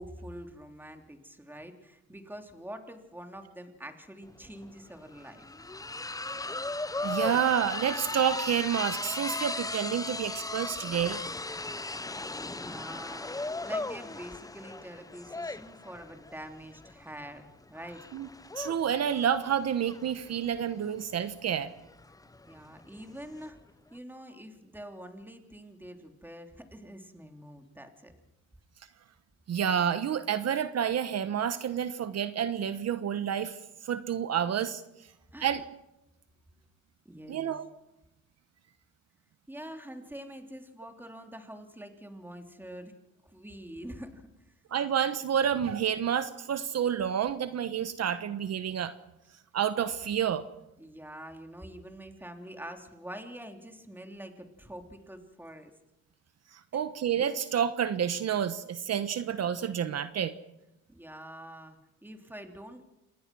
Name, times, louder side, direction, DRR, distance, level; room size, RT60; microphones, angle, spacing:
voice 1, 0.0-5.5 12.2-18.0 22.5-23.6 23.9-28.1 35.3-35.5 37.0-37.5 39.5-42.9 43.2-44.5 50.8-55.7 56.7-56.8 60.9-62.8, equal, 5° right, 5 dB, 3.3 m, -45 dB
sound 1, 4.3-4.4 4.6-23.5, left 2 dB, 10° left, 0.8 m, -37 dB
voice 2, 7.0-11.2 18.1-18.3 18.5-21.7 29.5-34.8 35.4-35.6 37.3-37.7 44.7-48.9 49.5-50.4 56.5-60.3, right 9 dB, 55° right, 11 dB, 1.2 m, -29 dB
27.0 x 20.0 x 6.2 m, 0.94 s
cardioid pair, 90°, 30 cm